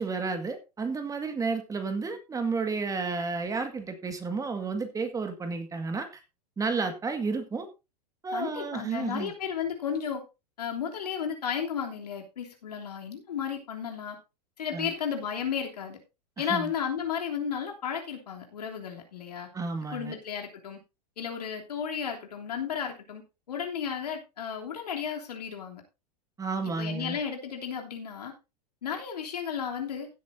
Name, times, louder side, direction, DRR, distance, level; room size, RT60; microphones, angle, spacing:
voice 1, 0.0-6.2 6.6-7.7 8.2-9.3 14.7-14.9 16.4-16.7 19.5-20.1 26.4-27.2, right 4 dB, 15° right, 7 dB, 1.9 m, -31 dB
voice 2, 8.3-10.2 10.6-14.2 14.6-16.0 16.4-19.5 19.9-20.8 21.2-23.2 23.5-25.8 26.8-28.3 28.8-30.1, left 7 dB, 75° left, 2 dB, 3.2 m, -33 dB
16.0 x 8.5 x 2.7 m, 0.27 s
figure-of-eight pair, 95°, 21 cm